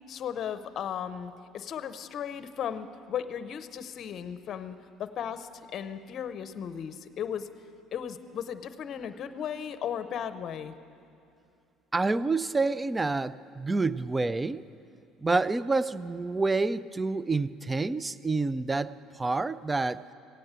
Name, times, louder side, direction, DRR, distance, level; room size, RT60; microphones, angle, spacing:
voice 1, 0.1-7.5 7.9-10.7, left 8 dB, 50° left, 11 dB, 0.7 m, -36 dB
voice 2, 11.9-14.6 15.2-20.0, right 3 dB, 15° right, 16 dB, 0.4 m, -28 dB
17.0 x 8.7 x 8.1 m, 2.5 s
cardioid pair, 110°, 0 cm